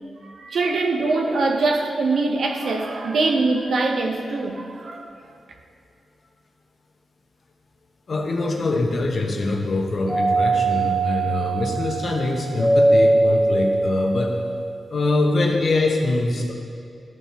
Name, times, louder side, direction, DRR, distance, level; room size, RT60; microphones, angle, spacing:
voice 1, 0.2-5.1, right 3 dB, 70° right, 3 dB, 0.8 m, -23 dB
voice 2, 8.1-14.4 14.9-16.5, left 2 dB, 55° left, 1 dB, 1.0 m, -23 dB
Doorbell, 10.1-14.9, right 2 dB, 10° right, 0.9 m, -21 dB
12.0 x 4.3 x 3.5 m, 2.5 s
cardioid pair, 60°, 0 cm